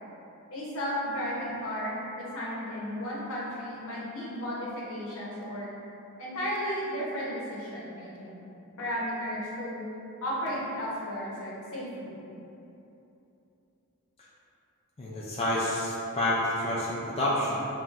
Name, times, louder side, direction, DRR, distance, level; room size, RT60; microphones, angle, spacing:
voice 1, 0.5-5.7 6.2-8.5 8.8-9.8 10.2-12.2, equal, 65° left, -6 dB, 0.9 m, -34 dB
voice 2, 15.0-17.7, left 1 dB, 25° left, -7 dB, 0.4 m, -28 dB
5.6 x 2.3 x 2.5 m, 2.9 s
head